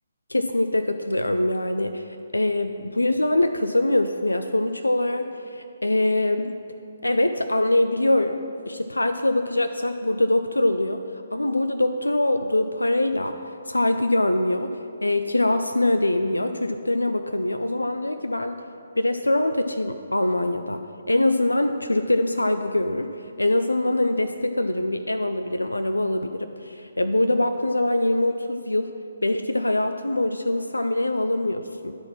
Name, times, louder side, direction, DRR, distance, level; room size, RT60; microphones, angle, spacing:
voice 1, 0.3-6.5 7.0-8.4 8.7-11.0 11.3-13.4 13.7-14.7 15.0-18.6 19.0-28.9 29.2-31.9, left 1 dB, 85° left, 8 dB, 0.3 m, -23 dB
11.0 x 4.3 x 6.0 m, 2.6 s
figure-of-eight pair, 140°, 0 cm